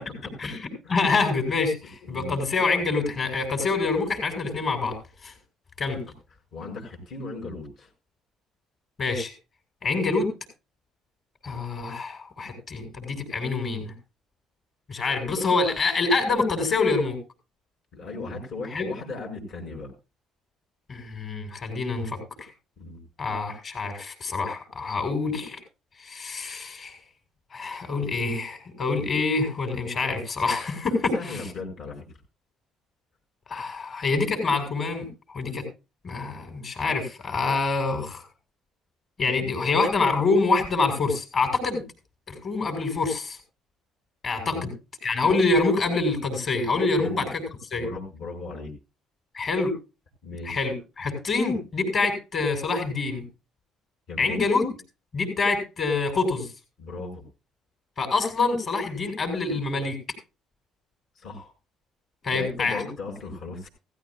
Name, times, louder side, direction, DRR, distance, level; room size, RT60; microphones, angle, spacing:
voice 1, 0.9-5.0 5.2-5.3 5.8-6.0 9.0-9.3 9.8-10.3 11.4-13.9 14.9-17.2 18.7-18.9 20.9-22.5 23.2-25.6 26.0-26.9 27.5-31.4 33.5-35.1 35.3-35.6 36.0-38.2 39.2-41.8 42.3-43.4 44.2-44.7 45.0-47.3 47.7-47.9 49.3-49.7 50.5-53.2 54.2-54.7 55.1-56.5 58.0-60.0 62.2-62.8, left 3 dB, 45° left, 3 dB, 6.4 m, -26 dB
voice 2, 2.0-2.4 6.5-7.9 17.9-19.9 22.8-23.0 31.1-32.1 44.5-44.7 47.0-47.2 47.7-48.7 50.2-50.6 54.1-54.4 56.8-57.2 61.1-61.5 62.3-63.7, left 3 dB, 60° left, 1 dB, 6.6 m, -36 dB
17.0 x 15.5 x 2.4 m, 0.29 s
cardioid pair, 110°, 0 cm